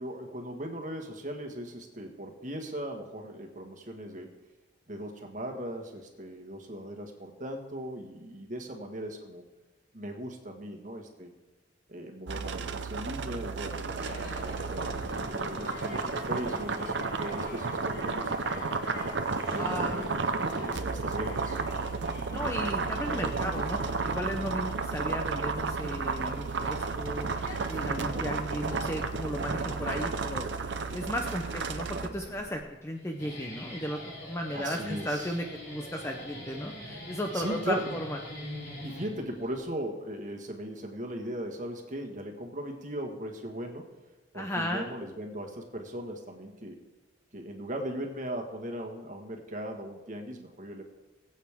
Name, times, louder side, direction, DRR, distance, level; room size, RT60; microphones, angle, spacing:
voice 1, 0.0-4.4 4.9-9.4 9.9-11.3 11.9-18.7 19.5-20.1 20.6-21.6 28.7-29.1 34.5-35.4 37.3-37.9 38.8-43.9 44.3-46.8 47.3-50.8, right 1 dB, 40° right, 3 dB, 1.6 m, -38 dB
sound 1, 12.3-32.1, right 4 dB, 65° right, 0.7 m, -32 dB
sound 2, 14.0-32.6, equal, 70° left, 3.5 m, -44 dB
voice 2, 19.5-20.1 22.3-38.2 44.3-44.9, equal, 15° left, 2 dB, 0.7 m, -35 dB
Guitar, 33.0-39.6, left 1 dB, 55° left, 4.9 m, -43 dB
21.0 x 8.3 x 3.6 m, 1.1 s
head